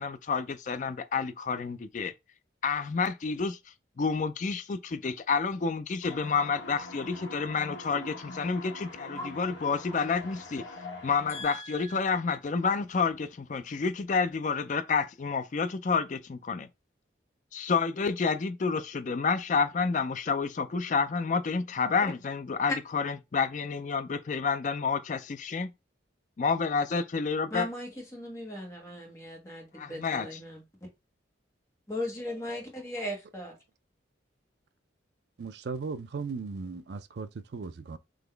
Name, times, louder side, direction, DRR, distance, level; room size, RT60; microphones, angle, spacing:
voice 1, 0.0-2.1 2.6-10.6 11.0-16.7 17.5-25.7 26.4-27.7 29.8-30.4, left 5 dB, 40° left, 0.4 m, -29 dB
sound 1, 6.0-11.4, left 2 dB, 85° left, 1.0 m, -43 dB
voice 2, 11.3-11.9 27.5-30.6 31.9-33.5, left 1 dB, 15° left, 1.4 m, -38 dB
voice 3, 35.4-38.0, right 4 dB, 60° right, 0.4 m, -37 dB
3.9 x 2.9 x 3.3 m
head